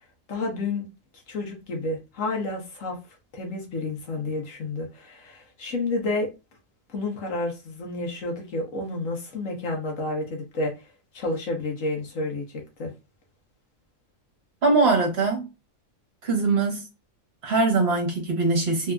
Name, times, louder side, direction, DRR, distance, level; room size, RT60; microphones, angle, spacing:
voice 1, 0.3-0.9 1.3-3.0 3.3-6.3 6.9-10.7 11.1-12.9, left 2 dB, 65° left, 1.4 m, -30 dB
voice 2, 14.6-15.5 16.2-16.9 17.4-18.9, right 3 dB, 50° right, 1.3 m, -22 dB
3.4 x 2.7 x 2.3 m
omnidirectional pair, 1.5 m